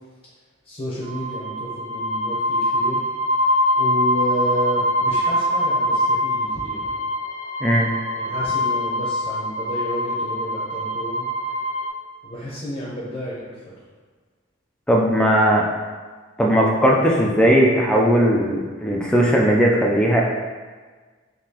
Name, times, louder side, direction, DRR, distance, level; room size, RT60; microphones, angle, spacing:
voice 1, 0.6-3.0 3.7-6.9 8.2-11.3 12.2-13.8, equal, 30° left, -6 dB, 0.7 m, -31 dB
sound 1, 1.0-11.9, equal, 90° left, 1.1 m, -23 dB
voice 2, 14.9-15.7 16.4-20.2, equal, 5° left, -3 dB, 0.3 m, -17 dB
3.7 x 2.8 x 2.8 m, 1.4 s
head